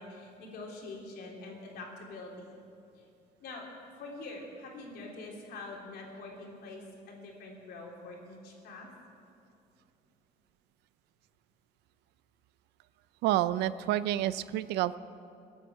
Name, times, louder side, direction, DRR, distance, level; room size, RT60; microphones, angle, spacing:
voice 1, 0.0-2.4 2.9-3.0 3.4-3.7 4.0-8.9, left 2 dB, 70° left, -1 dB, 3.4 m, -45 dB
voice 2, 13.2-15.0, right 13 dB, 85° right, 16 dB, 0.5 m, -29 dB
21.5 x 8.2 x 7.6 m, 2.6 s
cardioid pair, 110°, 17 cm